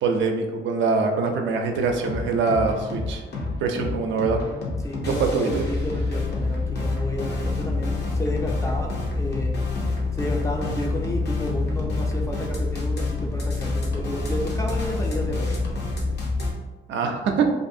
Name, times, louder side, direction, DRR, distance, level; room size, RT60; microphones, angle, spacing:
voice 1, 0.0-3.2 3.6-4.4 5.1-5.6 16.9-17.5, right 4 dB, 70° right, 3 dB, 0.4 m, -23 dB
sound 1, 1.8-16.5, left 3 dB, 55° left, 0.8 m, -27 dB
voice 2, 4.8-9.6 10.1-15.6, left 1 dB, 15° left, 1 dB, 0.4 m, -31 dB
2.5 x 2.4 x 2.6 m, 1.2 s
cardioid pair, 90°, 20 cm